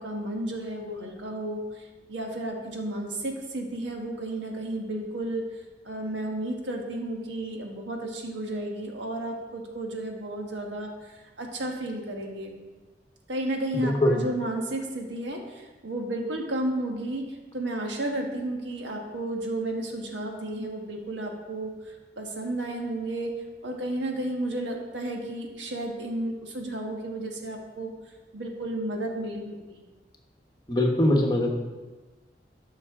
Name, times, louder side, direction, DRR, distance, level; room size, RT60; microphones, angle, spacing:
voice 1, 0.0-5.4 5.8-12.5 13.3-17.2 17.5-23.3 23.6-27.9 28.3-29.8, right 1 dB, 90° right, 2 dB, 1.4 m, -32 dB
voice 2, 13.7-14.1 30.7-31.5, left 1 dB, 25° left, 1 dB, 1.1 m, -22 dB
12.5 x 5.6 x 3.7 m, 1.2 s
head